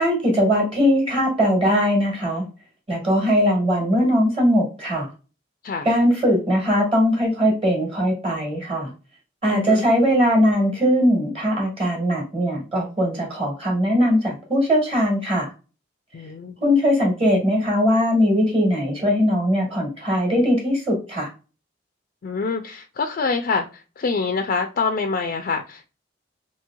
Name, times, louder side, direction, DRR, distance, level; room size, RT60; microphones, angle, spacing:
voice 1, 0.0-2.4 2.9-5.1 5.8-8.9 9.4-15.5 16.6-21.3, equal, 30° right, 1.2 m, -20 dB
voice 2, 9.5-9.9 16.1-16.6 22.2-25.9, left 4 dB, 50° left, 0.3 m, -26 dB
3.0 x 2.8 x 2.2 m
head